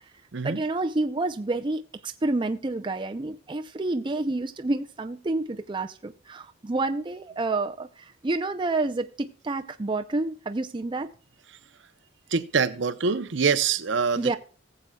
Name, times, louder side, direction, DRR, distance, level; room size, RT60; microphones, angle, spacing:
voice 1, 0.4-11.1 14.2-14.4, right 2 dB, 25° right, 0.5 m, -29 dB
voice 2, 12.3-14.3, right 5 dB, 65° right, 0.7 m, -25 dB
19.0 x 7.7 x 2.3 m
head